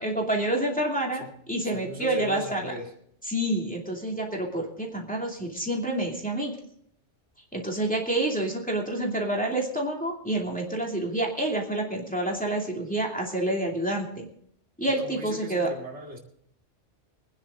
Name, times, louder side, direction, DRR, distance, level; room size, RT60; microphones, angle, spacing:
voice 1, 0.0-2.7 3.2-6.5 7.5-14.3 14.8-15.7, right 1 dB, 5° left, -1 dB, 2.6 m, -28 dB
voice 2, 1.6-2.9 14.8-16.2, left 1 dB, 70° right, 1 dB, 2.5 m, -37 dB
24.5 x 10.0 x 3.8 m, 0.68 s
omnidirectional pair, 1.2 m